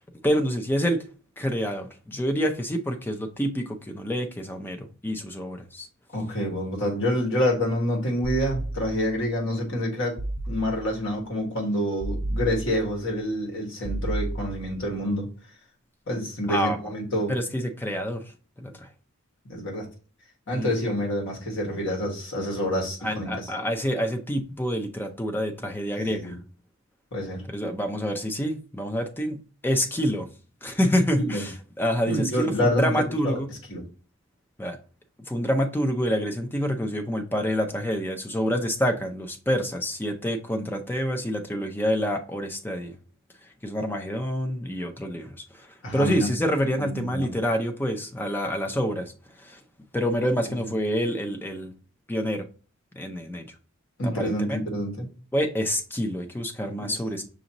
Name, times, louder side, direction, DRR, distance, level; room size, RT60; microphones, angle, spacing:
voice 1, 0.2-1.0 1.4-5.9 16.5-16.8 17.3-18.2 18.6-18.9 20.5-20.7 23.0-26.3 27.5-30.3 30.6-33.5 34.6-34.8 35.3-42.9 43.6-45.7 45.9-49.1 49.4-49.6 49.9-51.7 52.1-52.5 53.0-53.5 54.0-54.6 55.3-57.2, equal, 10° left, 0.5 m, -27 dB
voice 2, 6.1-10.2 10.5-15.3 16.1-17.3 19.5-19.9 20.5-23.5 26.0-26.4 27.1-27.4 31.2-31.4 32.1-32.9 33.2-33.8 45.8-46.4 46.8-47.3 50.5-50.7 54.0-55.1 56.8-56.9, equal, 60° left, 1.6 m, -27 dB
sound 1, 8.2-9.3 10.2-11.1 12.0-13.1 13.8-14.9, right 1 dB, 85° right, 1.0 m, -32 dB
6.1 x 2.6 x 2.9 m
head